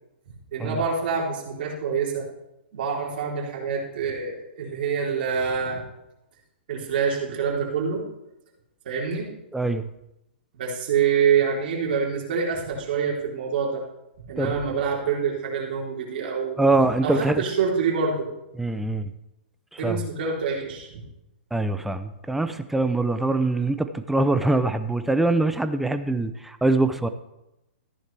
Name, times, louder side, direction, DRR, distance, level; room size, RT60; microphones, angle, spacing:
voice 1, 0.5-2.3 2.7-5.8 6.7-8.1 8.9-9.3 10.5-13.8 14.3-16.6 17.0-18.3 19.8-21.0, right 6 dB, 55° right, -3 dB, 3.6 m, -26 dB
voice 2, 9.5-9.9 14.4-14.5 16.6-17.4 18.6-19.1 19.8-20.0 21.5-27.1, right 2 dB, 5° right, 10 dB, 0.5 m, -23 dB
14.0 x 9.9 x 3.4 m, 0.91 s
hypercardioid pair, 150°, 6 cm